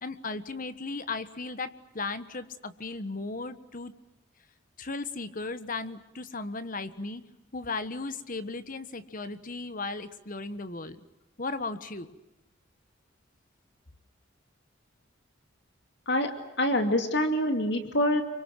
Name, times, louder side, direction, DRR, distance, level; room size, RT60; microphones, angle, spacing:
voice 1, 0.0-3.9 4.8-7.2 7.5-11.0 11.4-12.1, left 3 dB, 45° left, 12 dB, 1.4 m, -36 dB
voice 2, 16.6-18.2, left 1 dB, 60° left, 6 dB, 2.5 m, -25 dB
27.5 x 24.5 x 7.7 m, 0.98 s
head